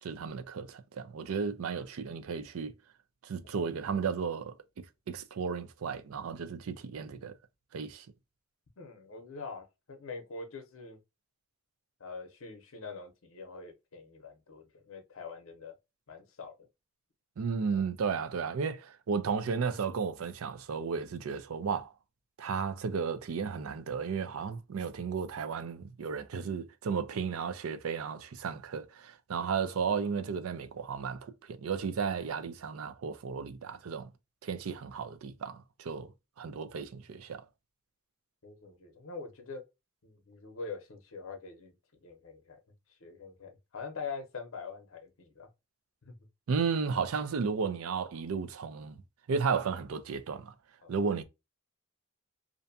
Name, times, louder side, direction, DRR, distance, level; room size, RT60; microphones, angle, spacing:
voice 1, 0.0-2.7 3.2-7.4 7.7-8.1 17.4-21.9 22.4-34.1 34.4-36.1 36.4-37.4 46.5-49.0 49.3-50.5 50.9-51.2, right 5 dB, 80° right, 0.4 m, -34 dB
voice 2, 8.8-11.0 12.0-15.7 16.1-16.7 38.4-39.6 40.0-41.7 42.0-42.6 43.0-45.5 46.0-46.1 50.8-50.9, left 4 dB, 70° left, 0.6 m, -44 dB
2.5 x 2.2 x 2.6 m
head